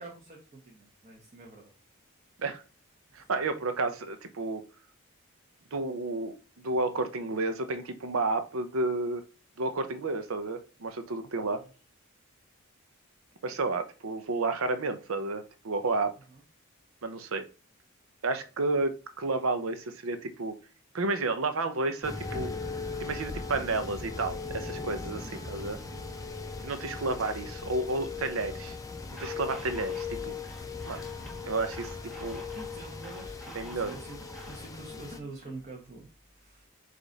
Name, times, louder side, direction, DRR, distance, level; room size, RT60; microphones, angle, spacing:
voice 1, 0.0-1.7 3.1-3.3 11.4-11.6 16.3-16.4 25.9-26.1 32.5-36.7, right 2 dB, 35° right, -1 dB, 1.0 m, -46 dB
voice 2, 3.1-4.6 5.7-9.2 9.6-11.6 13.4-16.1 17.0-17.4 18.2-20.5 20.9-22.5 23.0-25.8 26.6-28.8 29.2-30.4 30.9-31.0 31.5-31.9 32.2-32.5 33.5-33.9, right 3 dB, 75° right, 9 dB, 0.6 m, -31 dB
sound 1, 22.0-35.2, left 4 dB, 15° left, 0.4 m, -38 dB
sound 2, 29.1-34.6, right 1 dB, ahead, 1.1 m, -49 dB
4.8 x 2.5 x 3.9 m, 0.36 s
head